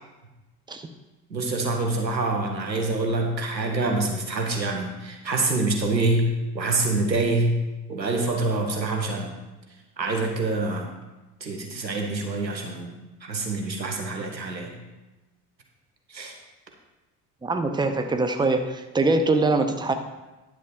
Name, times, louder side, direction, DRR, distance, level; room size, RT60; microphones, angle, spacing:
voice 1, 1.3-6.3 6.5-7.5 7.9-9.3 10.0-10.9 11.4-12.9 13.2-14.8 16.1-16.4, right 3 dB, 90° right, 2 dB, 1.0 m, -26 dB
voice 2, 17.4-19.9, right 3 dB, 10° right, 7 dB, 0.8 m, -23 dB
10.5 x 6.4 x 4.4 m, 1.1 s
figure-of-eight pair, 50°, 50 cm